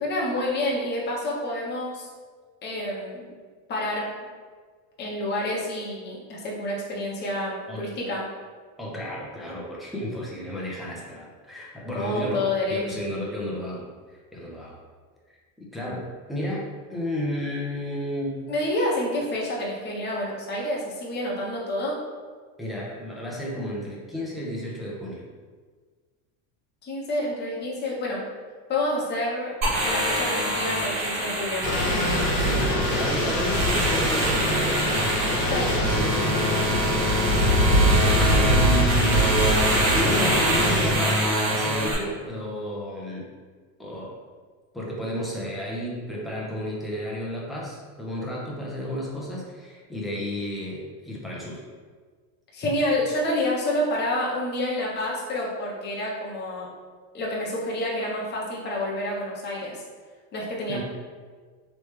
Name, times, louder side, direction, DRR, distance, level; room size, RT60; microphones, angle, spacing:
voice 1, 0.0-2.1 2.6-3.3 3.7-4.1 5.0-8.2 11.9-12.8 18.5-22.0 26.8-28.2 28.7-29.5 29.8-31.7 35.5-35.8 52.5-56.7 57.1-59.8 60.3-60.8, left 1 dB, 25° left, -4 dB, 0.8 m, -28 dB
voice 2, 8.8-14.8 15.3-18.4 22.6-25.2 32.4-34.6 35.2-36.6 37.8-39.4 39.9-41.2 41.5-43.3 43.8-44.2 44.7-51.6 60.7-60.8, equal, ahead, -5 dB, 0.4 m, -32 dB
sound 1, 29.6-41.9, right 1 dB, 35° right, 1.2 m, -25 dB
sound 2, 31.6-40.9, equal, 80° left, 1.0 m, -23 dB
3.2 x 3.1 x 3.1 m, 1.5 s
supercardioid pair, 135°, 44 cm